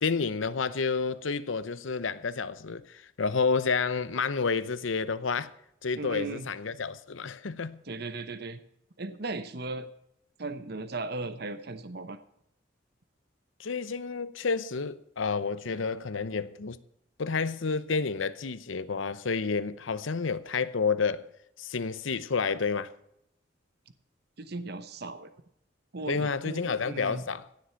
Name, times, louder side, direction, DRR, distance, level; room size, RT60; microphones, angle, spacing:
voice 1, 0.0-5.5 5.8-7.8 13.6-16.8 17.2-21.3 21.6-22.9 26.1-27.4, left 5 dB, 80° left, 0.7 m, -30 dB
voice 2, 6.0-6.5 7.8-8.6 9.0-9.9 10.4-12.2 24.4-25.3 25.9-27.2, right 2 dB, 55° right, 0.9 m, -37 dB
16.5 x 7.7 x 5.8 m
head